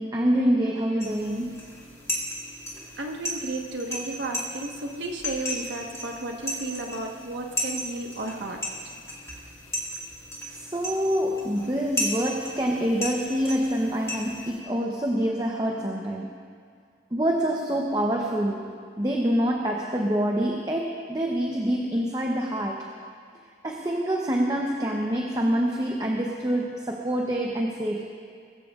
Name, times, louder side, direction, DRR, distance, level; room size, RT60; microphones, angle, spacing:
voice 1, 0.0-1.8 2.8-2.9 10.5-16.4 17.1-18.7 19.0-22.9 23.6-28.1, equal, 20° right, 0 dB, 0.8 m, -26 dB
sound 1, 1.0-14.6, equal, 15° left, 2.0 m, -35 dB
voice 2, 3.0-8.7, right 2 dB, 75° right, 2 dB, 1.3 m, -33 dB
21.0 x 14.5 x 2.5 m, 2.2 s
head